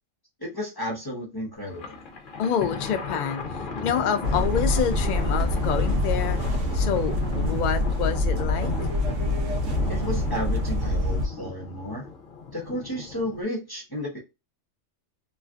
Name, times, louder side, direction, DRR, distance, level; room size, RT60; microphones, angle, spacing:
voice 1, 0.4-2.0 3.9-4.0 9.9-12.1 12.5-14.2, equal, 20° left, 0.8 m, -33 dB
Thunder, 1.6-13.4, left 4 dB, 50° left, 0.7 m, -36 dB
voice 2, 2.4-3.4 3.8-6.4 6.7-8.7, left 8 dB, 75° left, 0.4 m, -27 dB
sound 1, 4.2-11.3, left 1 dB, 70° right, 1.0 m, -25 dB
3.1 x 2.4 x 2.4 m
omnidirectional pair, 1.3 m